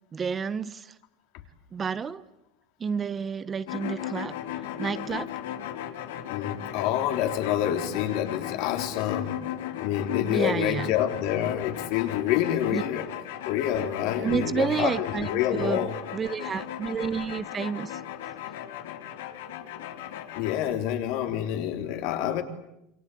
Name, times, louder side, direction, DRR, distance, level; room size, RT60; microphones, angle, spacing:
voice 1, 0.1-0.9 1.7-2.2 2.8-4.4 4.8-5.3 10.3-11.0 12.7-12.8 14.2-18.0, right 6 dB, 25° right, 1.0 m, -30 dB
sound 1, 3.7-20.7, left 11 dB, 85° left, 2.8 m, -36 dB
voice 2, 6.3-9.4 9.8-13.1 13.5-15.9 20.4-22.4, left 11 dB, 70° left, 3.7 m, -27 dB
27.5 x 24.0 x 8.6 m
supercardioid pair, 120°, 0 cm